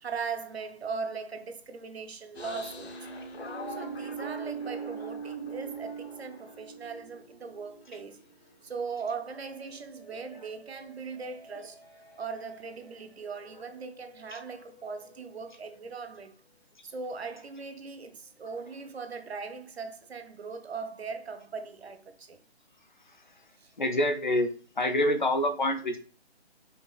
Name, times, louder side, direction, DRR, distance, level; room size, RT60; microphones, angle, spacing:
voice 1, 0.0-3.1 3.7-8.2 8.6-11.8 12.2-16.3 16.8-22.4 23.6-23.7, right 5 dB, 70° right, 0.6 m, -39 dB
sound 1, 2.3-8.3 8.7-12.9 13.2-15.8, right 3 dB, 75° left, 0.9 m, -43 dB
voice 2, 23.8-24.5 24.8-26.0, left 1 dB, 45° left, 0.5 m, -26 dB
5.3 x 2.3 x 2.3 m
hypercardioid pair, 175°, 32 cm